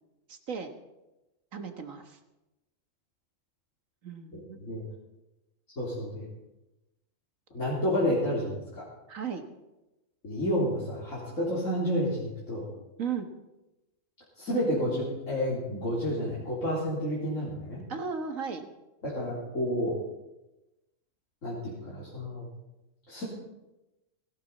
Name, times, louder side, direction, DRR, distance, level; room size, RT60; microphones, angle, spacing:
voice 1, 0.3-0.7 1.5-2.2 4.0-4.6 9.1-9.4 13.0-13.3 17.9-18.7, right 6 dB, 85° right, 6 dB, 1.9 m, -35 dB
voice 2, 4.3-4.8 5.8-6.3 7.5-8.8 10.2-12.7 14.4-17.8 19.0-20.0 21.4-22.5 23.1-23.2, equal, 75° left, -7 dB, 3.9 m, -30 dB
17.0 x 17.0 x 4.2 m, 1.0 s
omnidirectional pair, 1.3 m